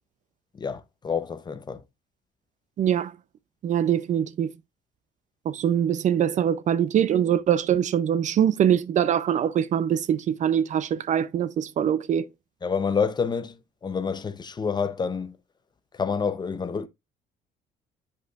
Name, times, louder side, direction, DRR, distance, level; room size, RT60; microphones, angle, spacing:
voice 1, 0.5-1.8 12.6-13.6 13.8-15.4 15.9-16.9, left 5 dB, 25° left, 0.6 m, -28 dB
voice 2, 2.8-3.1 3.6-4.5 5.5-12.3, right 9 dB, 45° right, 0.4 m, -23 dB
8.3 x 5.3 x 2.4 m
cardioid pair, 110°, 17 cm